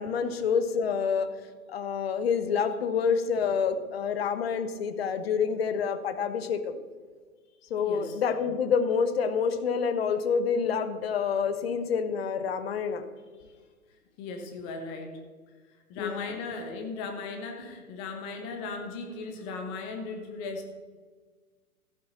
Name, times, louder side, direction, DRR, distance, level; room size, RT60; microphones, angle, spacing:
voice 1, 0.0-1.3 1.7-6.8 7.7-13.0 16.0-16.3, left 6 dB, 40° left, 10 dB, 1.0 m, -27 dB
voice 2, 7.8-8.2 13.4-13.5 14.2-15.2 15.9-20.7, left 4 dB, 10° left, 4 dB, 0.6 m, -37 dB
14.5 x 7.8 x 4.2 m, 1.4 s
figure-of-eight pair, 120°, 45 cm